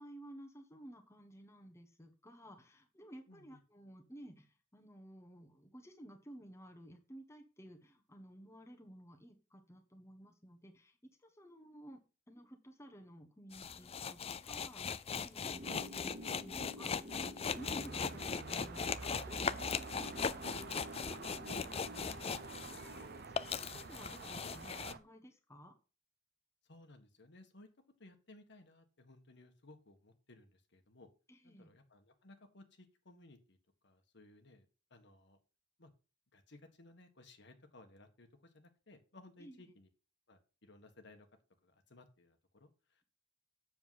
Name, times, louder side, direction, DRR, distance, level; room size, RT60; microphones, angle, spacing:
voice 1, 0.0-12.0 12.3-25.7 31.3-31.7 39.4-39.7, equal, 15° left, 3 dB, 1.3 m, -55 dB
voice 2, 3.3-3.6 15.5-15.8 26.6-27.7 28.0-31.1 31.4-33.6 33.8-35.4 35.8-35.9 36.3-39.9 40.3-41.3 41.6-43.0, left 2 dB, 65° left, 6 dB, 1.6 m, -60 dB
sound 1, 13.5-23.0 23.2-24.9, left 6 dB, 30° left, 0.5 m, -39 dB
sound 2, 15.4-23.2, equal, 30° right, 1.7 m, -52 dB
sound 3, 17.4-25.0, right 4 dB, 55° right, 0.9 m, -49 dB
7.7 x 7.0 x 5.8 m, 0.34 s
head